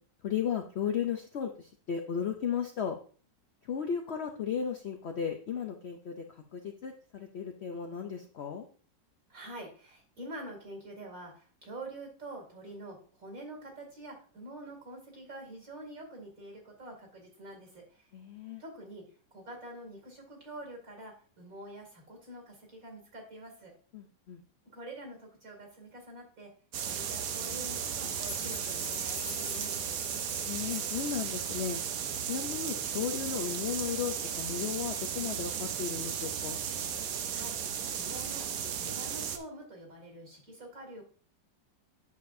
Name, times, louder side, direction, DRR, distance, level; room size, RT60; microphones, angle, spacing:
voice 1, 0.2-3.0 3.7-6.2 6.5-8.7 18.1-18.6 23.9-24.4 30.5-31.8 32.3-36.6, left 7 dB, 85° left, 4 dB, 0.5 m, -35 dB
voice 2, 9.3-18.1 18.6-19.0 19.3-23.7 24.7-26.5 26.8-30.0 37.3-38.5 38.8-41.0, right 1 dB, 50° right, 1 dB, 2.9 m, -46 dB
sound 1, 26.7-39.4, right 8 dB, 70° right, 1.3 m, -35 dB
sound 2, 28.1-32.2 32.5-32.6, left 3 dB, 60° left, 2.1 m, -46 dB
8.4 x 6.6 x 2.6 m, 0.41 s
omnidirectional pair, 1.9 m